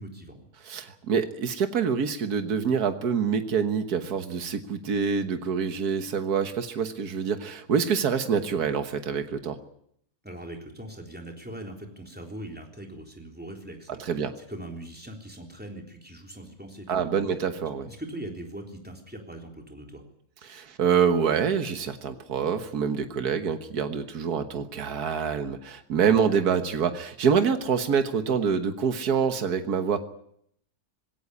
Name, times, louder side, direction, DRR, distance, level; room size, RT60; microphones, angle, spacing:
voice 1, 0.0-0.5 10.2-17.1 17.9-20.0, right 1 dB, 5° right, 2 dB, 3.7 m, -41 dB
voice 2, 0.7-9.6 14.0-14.3 16.9-17.9 20.4-30.0, right 6 dB, 85° right, 8 dB, 1.8 m, -26 dB
21.0 x 17.0 x 9.9 m, 0.72 s
omnidirectional pair, 1.6 m